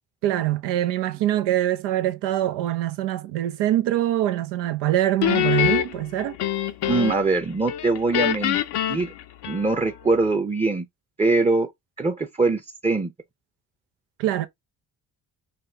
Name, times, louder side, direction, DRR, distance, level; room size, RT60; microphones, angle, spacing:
voice 1, 0.2-6.4 14.2-14.5, right 13 dB, 90° right, 0.6 m, -24 dB
Guitar, 5.2-7.4 7.7-10.0, left 12 dB, 70° left, 0.7 m, -25 dB
voice 2, 6.9-8.6 8.9-9.1 9.5-10.9 11.2-11.7 12.0-13.1, right 3 dB, 15° right, 0.6 m, -22 dB
4.2 x 2.1 x 3.5 m
supercardioid pair, 60°, 41 cm